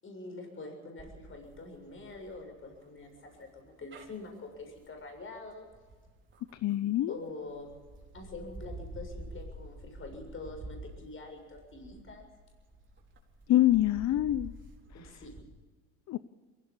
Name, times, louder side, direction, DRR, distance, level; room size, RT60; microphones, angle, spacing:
voice 1, 0.0-5.7 7.1-7.7 8.1-12.3 14.9-15.3, left 3 dB, 35° left, 3 dB, 7.0 m, -45 dB
sound 1, 1.0-7.0 7.5-15.4, right 2 dB, 30° right, 4.5 m, -48 dB
voice 2, 6.6-7.1 13.5-14.5 16.1-16.2, left 14 dB, 50° left, 15 dB, 0.9 m, -25 dB
22.5 x 16.5 x 7.4 m, 1.4 s
supercardioid pair, 80°, 36 cm